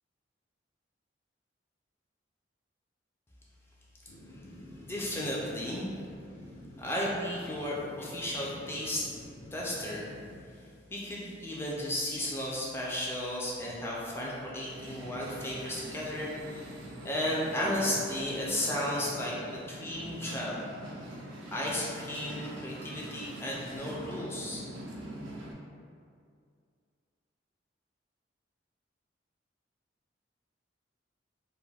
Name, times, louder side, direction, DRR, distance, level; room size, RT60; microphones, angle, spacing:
sound 1, 4.1-10.5, left 1 dB, 85° left, 0.4 m, -49 dB
voice 1, 4.8-5.9 6.8-9.0 9.5-10.1 10.9-16.7 17.0-20.6 21.5-24.6, left 1 dB, 15° left, -5 dB, 0.3 m, -34 dB
sound 2, 14.7-25.5, right 1 dB, 85° right, 0.5 m, -43 dB
2.3 x 2.1 x 3.2 m, 2.2 s
head